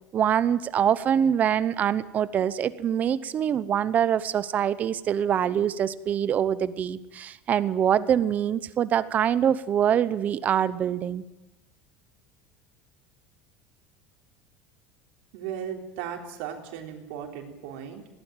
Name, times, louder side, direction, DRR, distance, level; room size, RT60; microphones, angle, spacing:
voice 1, 0.1-11.2, right 9 dB, 25° right, 16 dB, 0.8 m, -24 dB
voice 2, 15.3-18.1, right 8 dB, 70° right, 2 dB, 3.7 m, -36 dB
21.0 x 17.5 x 9.1 m, 0.95 s
cardioid pair, 175°, 6 cm